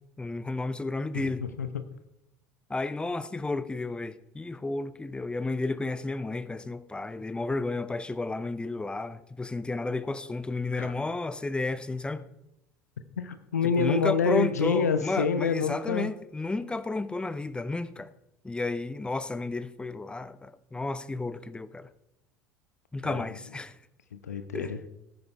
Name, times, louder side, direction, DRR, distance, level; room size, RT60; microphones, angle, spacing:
voice 1, 0.2-1.5 2.7-12.3 13.6-18.1 18.4-21.9 22.9-23.7 24.5-24.7, left 3 dB, 10° left, 0.8 m, -32 dB
voice 2, 1.1-1.8 10.7-10.9 13.2-16.1 23.0-23.2 24.1-24.8, left 5 dB, 75° left, 0.9 m, -27 dB
18.5 x 10.0 x 3.4 m
figure-of-eight pair, 65°, 9 cm